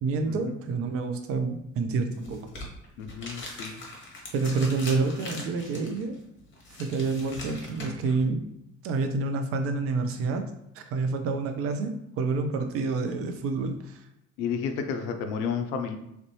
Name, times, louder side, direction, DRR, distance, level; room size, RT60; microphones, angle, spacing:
voice 1, 0.0-2.4 4.3-6.2 6.8-8.4 8.8-10.4 10.8-14.0, right 4 dB, 40° right, 6 dB, 0.5 m, -28 dB
sound 1, 2.1-8.2, left 2 dB, 30° left, 1.0 m, -42 dB
voice 2, 3.0-3.8 14.4-16.0, left 6 dB, 55° left, 7 dB, 0.5 m, -31 dB
3.2 x 2.5 x 3.1 m, 0.83 s
figure-of-eight pair, 55°, 37 cm